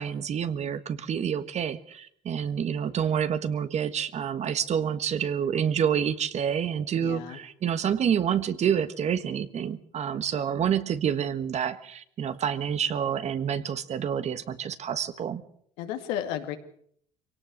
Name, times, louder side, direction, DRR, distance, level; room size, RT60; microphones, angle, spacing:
voice 1, 0.0-15.4, right 8 dB, 45° right, 12 dB, 1.4 m, -28 dB
voice 2, 7.0-7.4 15.8-16.6, left 10 dB, 85° left, 6 dB, 2.3 m, -33 dB
23.5 x 18.0 x 6.5 m, 0.64 s
supercardioid pair, 90°, 15 cm